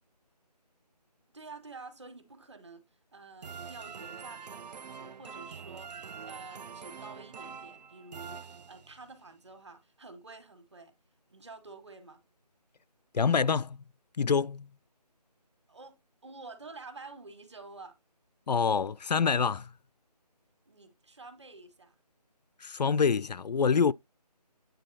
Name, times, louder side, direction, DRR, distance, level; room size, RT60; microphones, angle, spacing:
voice 1, 1.3-2.8 3.1-10.9 11.3-12.2 15.7-16.0 16.2-17.9 20.6-21.9, right 3 dB, 40° right, 1.7 m, -49 dB
sound 1, 3.4-9.1, right 6 dB, 75° right, 0.4 m, -45 dB
voice 2, 13.1-13.8 14.2-14.7 18.5-19.7 22.6-23.9, left 6 dB, 75° left, 0.4 m, -26 dB
9.2 x 3.9 x 4.0 m
figure-of-eight pair, 175°, 21 cm